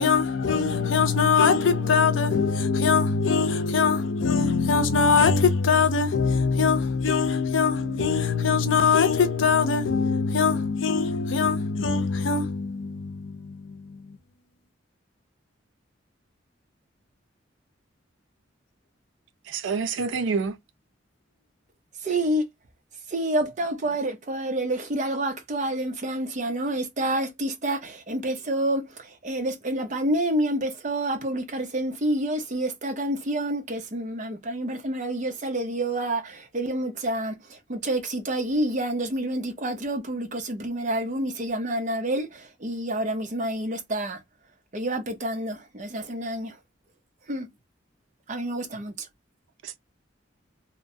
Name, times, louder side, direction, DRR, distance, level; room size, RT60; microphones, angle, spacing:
voice 1, 0.0-14.0, left 5 dB, 85° left, 0.5 m, -22 dB
voice 2, 19.5-20.6 49.6-49.8, right 5 dB, 85° right, 0.4 m, -27 dB
voice 3, 22.0-22.5 23.1-44.2 44.7-46.6 47.3-47.5 48.3-49.1, right 1 dB, 40° right, 0.6 m, -28 dB
2.8 x 2.0 x 2.6 m
head